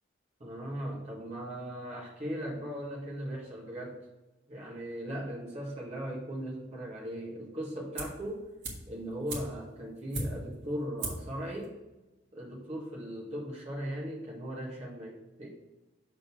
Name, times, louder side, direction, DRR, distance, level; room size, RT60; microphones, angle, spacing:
voice 1, 0.4-4.0 4.5-8.5 8.9-11.8 12.3-15.5, equal, 35° right, -4 dB, 1.7 m, -38 dB
sound 1, 8.0-8.3 8.6-10.6 11.0-11.4 11.6-11.7, right 2 dB, 65° right, 1.7 m, -38 dB
6.4 x 3.8 x 6.1 m, 1.1 s
head